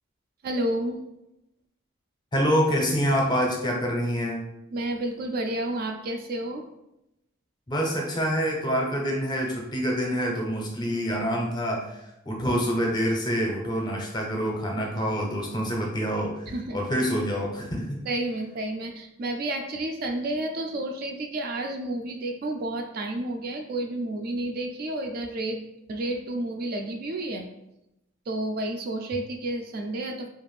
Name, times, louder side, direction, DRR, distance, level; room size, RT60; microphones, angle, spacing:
voice 1, 0.4-1.0 4.7-6.7 16.5-16.8 18.1-27.5 28.3-30.3, right 1 dB, 45° right, 3 dB, 0.3 m, -31 dB
voice 2, 2.3-4.5 7.7-18.0, equal, 20° left, 0 dB, 0.5 m, -26 dB
2.5 x 2.4 x 3.2 m, 0.85 s
head